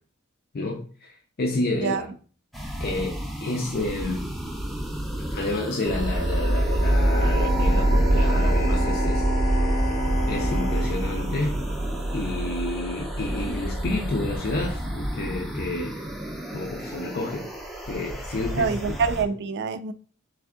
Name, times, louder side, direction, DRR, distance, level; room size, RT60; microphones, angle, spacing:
voice 1, 0.5-2.1 2.8-4.3 5.2-9.3 10.3-11.6 12.1-16.0 16.5-17.5 17.9-18.9, left 2 dB, 45° left, 0.6 m, -30 dB
voice 2, 1.7-2.0 18.5-19.9, right 5 dB, 50° right, 0.4 m, -26 dB
sound 1, 2.5-19.2, equal, ahead, 0.5 m, -34 dB
sound 2, 5.8-16.9, right 1 dB, 35° right, 0.7 m, -25 dB
Bowed string instrument, 7.0-13.0, equal, 75° left, 1.0 m, -33 dB
3.5 x 3.3 x 3.6 m
head